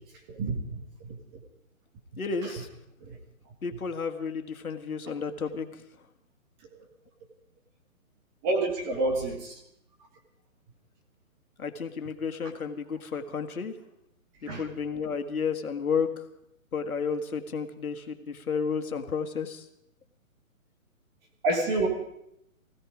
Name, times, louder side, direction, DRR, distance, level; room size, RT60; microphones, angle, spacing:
voice 1, 0.4-1.2 8.4-9.5 14.5-14.6 21.4-21.9, right 2 dB, 15° right, 2 dB, 1.5 m, -28 dB
voice 2, 2.2-2.7 3.6-5.7 11.6-13.8 14.4-16.2 16.7-19.7, left 5 dB, 85° left, 7 dB, 1.8 m, -32 dB
17.5 x 16.0 x 5.1 m, 0.79 s
hypercardioid pair, 165°, 42 cm